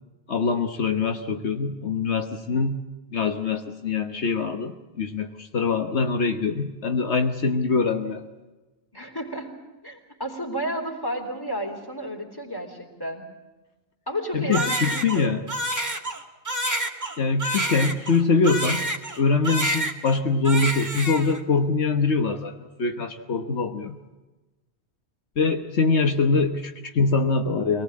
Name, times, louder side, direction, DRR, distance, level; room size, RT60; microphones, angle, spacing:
voice 1, 0.3-2.8 3.1-8.2 14.3-15.4 17.2-18.8 19.1-24.0 25.4-27.8, left 4 dB, 75° left, 6 dB, 1.5 m, -23 dB
voice 2, 8.9-9.5 9.8-13.2 14.1-15.4, right 1 dB, 20° left, 2 dB, 3.6 m, -32 dB
Crying sobbing, 14.5-19.2 19.4-20.2 20.4-21.4, right 1 dB, 15° right, 1.8 m, -28 dB
24.5 x 19.0 x 8.5 m, 1.1 s
omnidirectional pair, 1.1 m